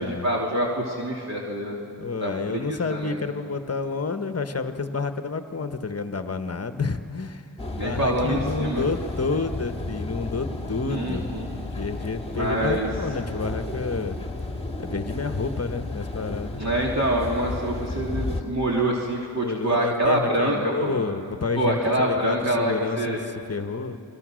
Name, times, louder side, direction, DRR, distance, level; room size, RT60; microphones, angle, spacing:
voice 1, 0.0-1.8 2.2-3.2 7.8-8.8 10.9-11.5 12.3-12.9 16.6-20.9 21.6-23.2, right 1 dB, 40° right, -3 dB, 3.0 m, -25 dB
voice 2, 2.0-7.4 7.8-11.3 11.8-14.2 14.8-16.6 19.4-23.2 23.5-24.0, left 4 dB, 35° left, 9 dB, 1.1 m, -29 dB
sound 1, 7.6-18.4, left 2 dB, 15° left, 2.0 m, -33 dB
29.5 x 22.0 x 6.3 m, 2.6 s
wide cardioid pair, 85°, 43 cm